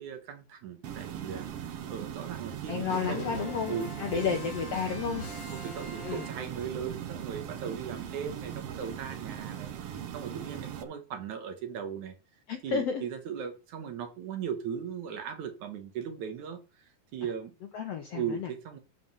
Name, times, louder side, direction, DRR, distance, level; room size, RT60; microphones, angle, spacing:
voice 1, 0.0-4.4 5.1-12.1 12.6-17.5 18.1-18.8, right 7 dB, 65° right, 2.4 m, -38 dB
brown noise echochmbr, 0.8-10.8, right 9 dB, 85° right, 1.3 m, -39 dB
voice 2, 2.7-5.2 6.0-6.2 12.5-13.0 17.7-18.5, left 6 dB, 70° left, 1.5 m, -32 dB
sound 1, 2.9-6.8, left 2 dB, 50° left, 4.0 m, -43 dB
13.0 x 5.1 x 5.5 m
omnidirectional pair, 4.1 m